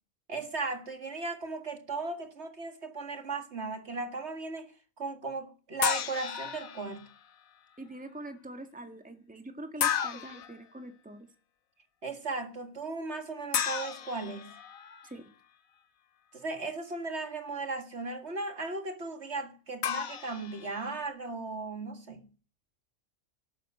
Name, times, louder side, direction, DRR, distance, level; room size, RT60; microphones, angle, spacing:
voice 1, 0.3-4.7 5.0-7.1 12.0-14.5 16.3-22.3, right 3 dB, 55° right, 2.2 m, -36 dB
sound 1, 5.8-7.1 9.8-10.5 13.5-15.1 19.8-21.0, left 8 dB, 85° left, 1.5 m, -33 dB
voice 2, 7.8-11.3 15.0-15.3, right 1 dB, 5° right, 1.8 m, -44 dB
12.5 x 12.0 x 7.7 m
omnidirectional pair, 1.4 m